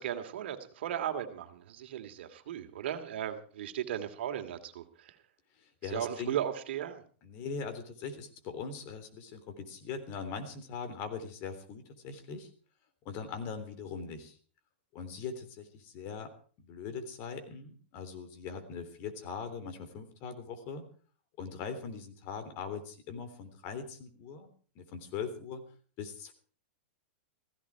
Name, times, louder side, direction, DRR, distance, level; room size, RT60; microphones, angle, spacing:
voice 1, 0.0-5.1 5.9-7.0, right 10 dB, 70° right, 7 dB, 2.4 m, -36 dB
voice 2, 5.6-6.4 7.2-12.5 13.0-14.4 14.9-16.3 16.6-20.8 21.4-25.6 26.0-26.3, left 5 dB, 40° left, 7 dB, 3.5 m, -41 dB
16.0 x 15.5 x 4.8 m, 0.42 s
hypercardioid pair, 140°, 6 cm